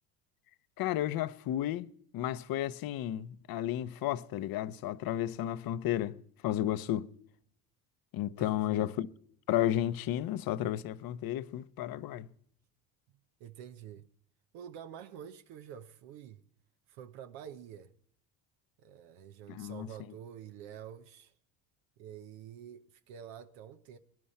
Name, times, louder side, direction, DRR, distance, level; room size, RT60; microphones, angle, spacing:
voice 1, 0.8-6.2 6.4-7.1 8.1-9.1 9.5-12.3 19.5-19.9, left 12 dB, 55° left, 0.8 m, -33 dB
voice 2, 8.2-8.9 13.4-14.1 14.5-16.4 16.9-17.9 18.8-21.3 22.0-24.0, right 9 dB, 75° right, 1.0 m, -48 dB
23.0 x 10.0 x 4.3 m
supercardioid pair, 95°, 44 cm